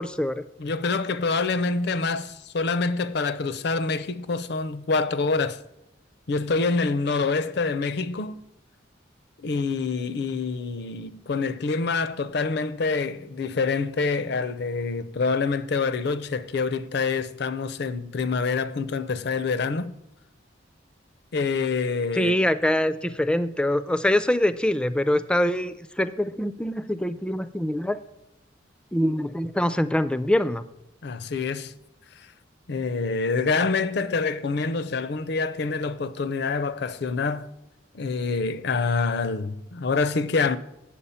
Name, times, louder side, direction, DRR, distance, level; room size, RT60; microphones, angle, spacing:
voice 1, 0.0-0.4 22.1-28.0 28.9-30.7, left 1 dB, 5° left, 0.3 m, -24 dB
voice 2, 0.6-5.6 6.3-8.4 9.4-19.9 21.3-22.3 31.0-31.7 32.7-37.5 37.9-40.6, left 4 dB, 60° left, 0.5 m, -26 dB
8.5 x 7.3 x 5.6 m
head